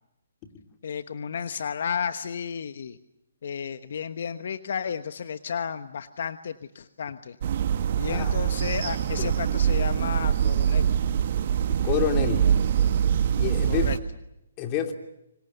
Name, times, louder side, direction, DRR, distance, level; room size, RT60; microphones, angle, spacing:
voice 1, 0.8-3.0 3.4-7.4 8.0-10.9 13.6-14.0, left 7 dB, 60° left, 10 dB, 1.2 m, -32 dB
sound 1, 7.4-14.0, right 9 dB, 50° right, 1.5 m, -24 dB
voice 2, 11.8-12.5 13.3-13.9 14.6-14.9, left 9 dB, 25° left, 4 dB, 3.0 m, -28 dB
27.5 x 25.5 x 6.9 m, 0.87 s
hypercardioid pair, 145°, 0 cm